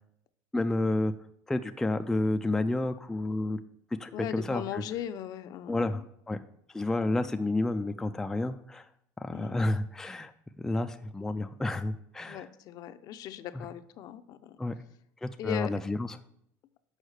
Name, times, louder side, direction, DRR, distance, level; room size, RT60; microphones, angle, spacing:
voice 1, 0.5-1.1 1.5-3.6 4.0-4.8 5.7-6.0 6.3-6.4 6.7-8.9 9.2-10.3 10.6-12.4 13.5-13.6 14.6-14.7 15.2-16.1, left 2 dB, 5° left, 7 dB, 0.3 m, -30 dB
voice 2, 4.1-6.0 7.0-7.3 9.3-9.6 12.2-14.6 15.4-15.7, left 11 dB, 55° left, 11 dB, 0.6 m, -38 dB
6.4 x 5.3 x 6.4 m, 0.73 s
cardioid pair, 140°, 8 cm